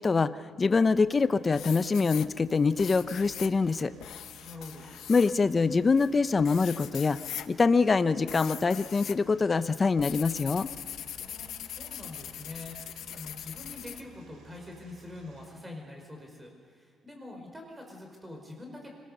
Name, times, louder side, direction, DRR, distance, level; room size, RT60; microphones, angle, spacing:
voice 1, 0.0-3.9 5.1-7.2 7.5-10.7, left 4 dB, 30° left, 12 dB, 0.8 m, -24 dB
sound 1, 0.8-1.2 1.5-9.2 9.5-14.0, left 11 dB, 80° left, 0.9 m, -41 dB
sound 2, 2.7-15.5, right 6 dB, 80° right, 5.2 m, -57 dB
voice 2, 4.4-4.9 11.2-18.9, left 2 dB, 15° right, 1 dB, 5.1 m, -45 dB
25.5 x 20.0 x 6.8 m, 2.1 s
cardioid pair, 90°, 0 cm